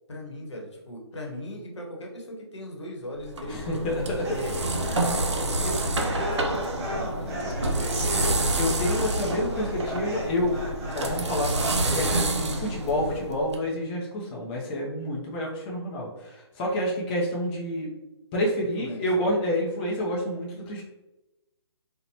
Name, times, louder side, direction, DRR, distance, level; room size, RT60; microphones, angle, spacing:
voice 1, 0.1-5.0 5.3-8.5 18.8-19.3, left 1 dB, 80° left, -1 dB, 0.9 m, -39 dB
sound 1, 3.2-13.6, right 2 dB, 85° right, 0.5 m, -28 dB
voice 2, 3.5-4.2 5.6-5.8 8.6-10.6 10.9-17.9 18.3-20.8, left 1 dB, 20° left, -3 dB, 0.4 m, -28 dB
sound 2, 4.2-12.2, equal, 40° right, 0.8 m, -36 dB
2.8 x 2.1 x 2.7 m, 1.0 s
figure-of-eight pair, 145°, 14 cm